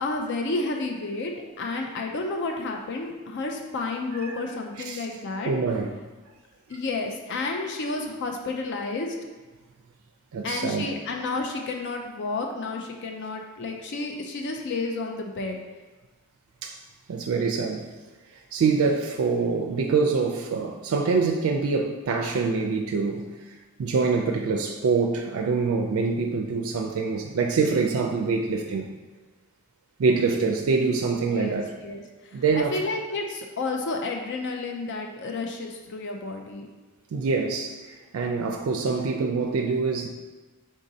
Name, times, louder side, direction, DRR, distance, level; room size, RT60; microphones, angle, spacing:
voice 1, 0.0-1.3 1.6-5.5 6.7-9.2 10.4-15.6 31.3-36.7, left 3 dB, 55° left, 2 dB, 0.4 m, -31 dB
voice 2, 5.5-5.9 10.3-10.9 16.6-16.8 17.1-17.9 18.3-28.9 30.0-31.7 32.3-32.8 37.1-40.1, right 4 dB, 75° right, 3 dB, 0.4 m, -25 dB
5.0 x 3.7 x 2.7 m, 1.2 s
head